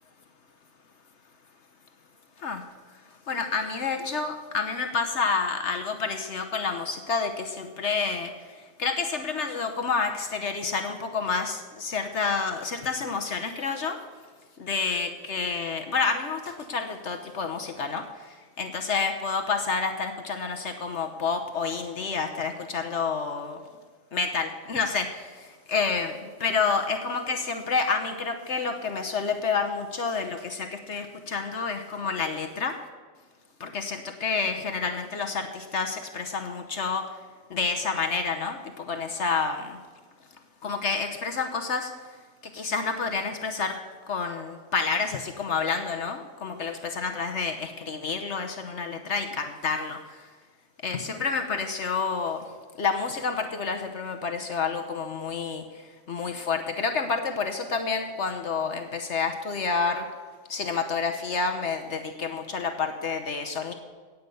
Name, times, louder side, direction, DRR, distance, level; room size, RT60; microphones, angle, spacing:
voice 1, 3.3-14.0 14.6-23.6 24.1-32.8 33.6-37.0 37.5-39.8 40.6-42.1 42.4-43.8 44.1-50.3 50.8-52.5 52.8-60.1 60.5-63.7, left 5 dB, 60° left, 5 dB, 1.2 m, -29 dB
17.0 x 8.4 x 5.4 m, 1.5 s
omnidirectional pair, 1.4 m